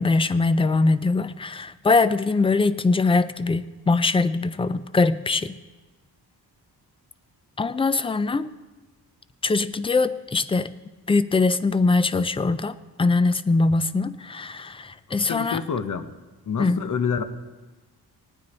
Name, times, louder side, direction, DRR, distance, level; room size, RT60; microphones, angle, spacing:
voice 1, 0.0-5.6 7.6-8.5 9.4-10.7 11.1-15.6 16.6-16.9, left 3 dB, 15° left, 14 dB, 0.3 m, -22 dB
voice 2, 15.3-16.1 16.5-17.2, left 6 dB, 50° left, 10 dB, 0.9 m, -27 dB
18.0 x 9.6 x 4.2 m, 1.2 s
wide cardioid pair, 130°, 39 cm